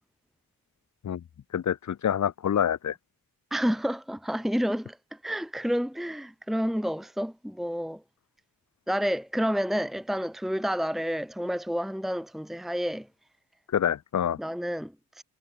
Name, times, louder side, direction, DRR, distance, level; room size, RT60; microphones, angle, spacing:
voice 1, 1.5-2.9 13.7-14.4, left 9 dB, 55° left, 1.1 m, -26 dB
voice 2, 3.5-8.0 8.9-13.1 14.4-15.2, equal, ahead, 1.7 m, -29 dB
cardioid pair, 85°, 35 cm